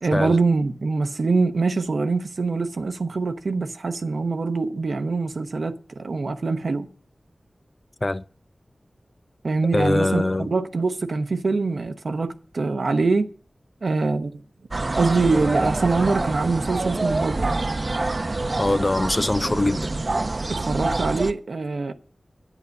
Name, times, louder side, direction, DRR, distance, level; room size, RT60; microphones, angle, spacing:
voice 1, 0.0-6.9 9.4-13.3 13.8-14.4 14.9-17.4 20.5-21.9, right 3 dB, 80° right, 0.9 m, -24 dB
voice 2, 9.7-10.5 18.6-19.9, left 2 dB, 35° left, 0.5 m, -22 dB
sound 1, 14.7-21.3, right 2 dB, 50° right, 0.6 m, -26 dB
11.0 x 9.2 x 5.3 m
wide cardioid pair, 60°, 0 cm